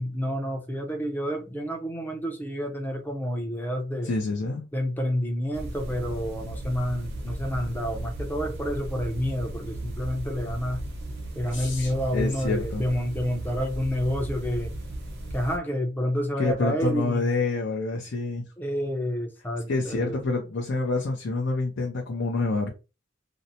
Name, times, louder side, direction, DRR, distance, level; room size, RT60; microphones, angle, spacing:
voice 1, 0.0-4.1 4.7-10.8 11.4-14.7 15.3-17.3 18.6-20.2, equal, 10° left, 0.5 m, -29 dB
voice 2, 4.0-4.6 11.5-12.8 16.4-18.4 19.7-22.7, left 3 dB, 60° left, 0.5 m, -27 dB
sound 1, 5.5-15.6, right 1 dB, 55° right, 0.7 m, -36 dB
2.6 x 2.0 x 2.8 m
head